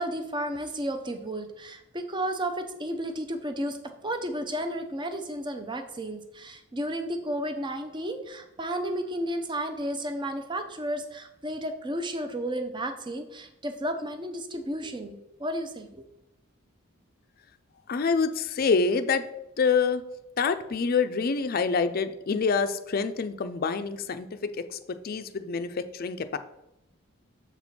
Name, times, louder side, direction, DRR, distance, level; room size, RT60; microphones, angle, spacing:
voice 1, 0.0-3.8 4.0-16.0, right 1 dB, 20° right, 7 dB, 0.6 m, -32 dB
voice 2, 17.9-19.2 19.6-20.0 20.4-26.4, left 5 dB, 45° left, 10 dB, 0.4 m, -26 dB
6.9 x 4.4 x 4.2 m, 0.87 s
head